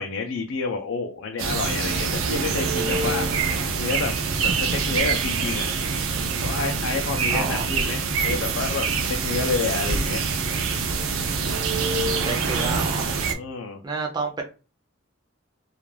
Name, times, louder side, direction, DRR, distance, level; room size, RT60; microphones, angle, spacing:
voice 1, 0.0-3.3 3.7-4.1 4.4-5.7 6.4-10.2 13.3-13.8, left 4 dB, 65° left, 3 dB, 0.4 m, -29 dB
sound 1, 1.4-13.3, right 4 dB, 85° right, 0.5 m, -25 dB
voice 2, 7.3-7.7 12.2-13.1 13.8-14.4, right 4 dB, 20° right, 1 dB, 0.4 m, -29 dB
2.4 x 2.2 x 3.1 m, 0.32 s
head